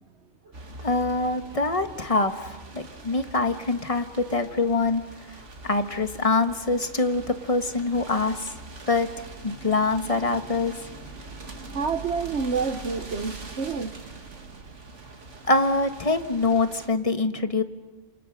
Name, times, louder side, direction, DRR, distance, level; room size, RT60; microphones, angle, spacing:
sound 1, 0.5-16.9, right 3 dB, 90° right, 2.3 m, -43 dB
voice 1, 0.8-5.0 5.6-8.5 8.9-10.7 15.5-17.6, left 3 dB, 30° left, 1.4 m, -24 dB
voice 2, 11.7-13.9, right 5 dB, 70° right, 1.5 m, -28 dB
29.5 x 27.5 x 6.6 m
omnidirectional pair, 1.2 m